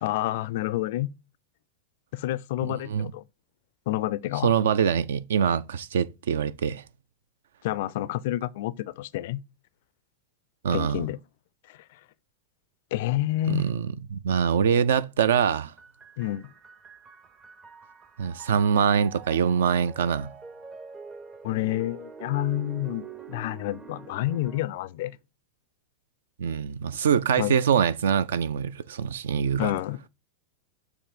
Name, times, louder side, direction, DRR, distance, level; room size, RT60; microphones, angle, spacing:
voice 1, 0.0-1.1 2.1-3.2 3.9-4.5 7.6-9.4 10.7-11.2 11.7-12.0 12.9-13.7 16.2-16.5 21.4-25.2 27.4-27.5 29.6-30.0, left 15 dB, 50° left, 0.3 m, -29 dB
voice 2, 2.6-3.1 4.4-6.8 10.6-11.0 13.5-15.7 18.2-20.3 26.4-29.7, right 7 dB, 60° right, 0.4 m, -24 dB
sound 1, 15.8-24.6, right 5 dB, 20° right, 0.6 m, -45 dB
7.0 x 2.7 x 5.0 m
figure-of-eight pair, 90°, 0 cm